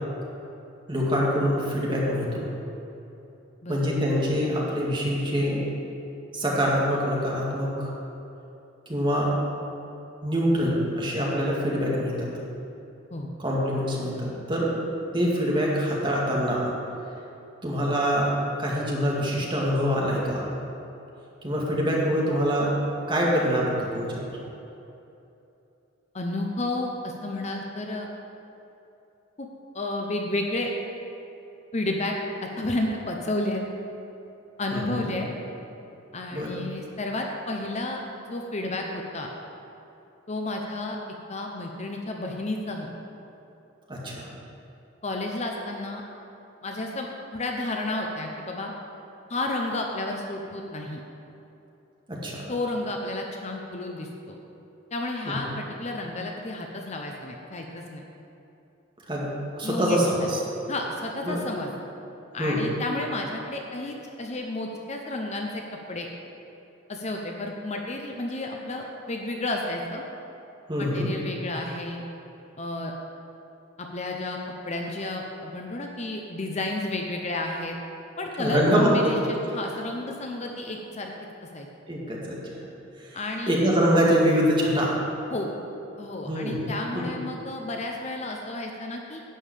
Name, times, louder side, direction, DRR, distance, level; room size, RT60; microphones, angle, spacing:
voice 1, 0.9-2.5 3.7-5.7 6.3-7.9 8.9-9.4 10.2-12.3 13.4-14.7 15.1-16.7 17.6-18.3 18.6-20.5 21.4-22.8 23.1-24.2 34.7-35.0 36.3-36.5 43.9-44.3 52.1-52.5 55.3-55.4 59.1-59.3 59.6-60.4 61.2-61.4 62.4-62.6 70.7-71.1 78.4-79.3 81.9-82.4 83.0-83.2 83.5-85.0 86.3-86.6 86.9-87.0, equal, 25° right, -4 dB, 2.1 m, -24 dB
voice 2, 26.1-28.1 29.4-29.5 29.7-30.7 31.7-32.2 32.4-33.6 34.6-35.3 36.1-38.0 38.3-39.3 40.3-41.0 41.3-42.9 45.0-46.0 46.6-48.7 49.3-51.0 52.5-54.4 54.9-58.0 59.6-60.0 60.7-61.7 62.3-65.6 65.9-66.1 66.9-70.0 70.8-72.0 72.6-72.9 73.8-74.4 74.7-77.8 78.2-81.1 81.5-81.7 83.1-83.6 85.3-85.5 86.0-89.2, left 2 dB, 35° left, 2 dB, 0.8 m, -31 dB
11.0 x 5.5 x 8.4 m, 2.9 s
head